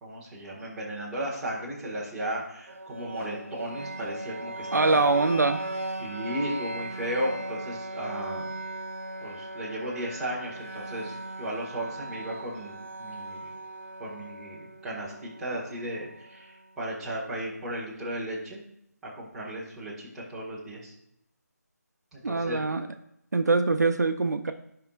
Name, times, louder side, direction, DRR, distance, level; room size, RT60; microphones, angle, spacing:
voice 1, 0.0-5.0 6.0-8.5 9.2-13.5 14.0-18.6 19.0-20.9 22.1-22.6, right 1 dB, 5° right, -10 dB, 1.4 m, -35 dB
sound 1, 2.7-16.6, right 2 dB, 50° right, 1.1 m, -38 dB
voice 2, 4.7-5.6 22.2-22.9 23.3-24.5, right 3 dB, 75° right, 8 dB, 0.8 m, -23 dB
14.0 x 5.8 x 2.4 m, 0.76 s
figure-of-eight pair, 170°, 9 cm